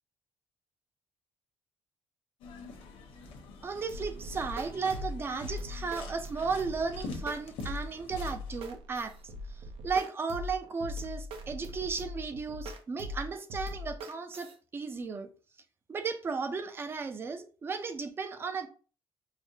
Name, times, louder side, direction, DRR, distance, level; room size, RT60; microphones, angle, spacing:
sound 1, 2.4-8.6, left 3 dB, 75° left, 0.8 m, -46 dB
voice 1, 3.6-9.2 9.5-15.3 15.9-18.7, right 5 dB, 25° right, 0.4 m, -35 dB
sound 2, 3.9-14.5, left 1 dB, 80° right, 0.6 m, -41 dB
4.9 x 2.1 x 2.7 m
cardioid pair, 170°, 10 cm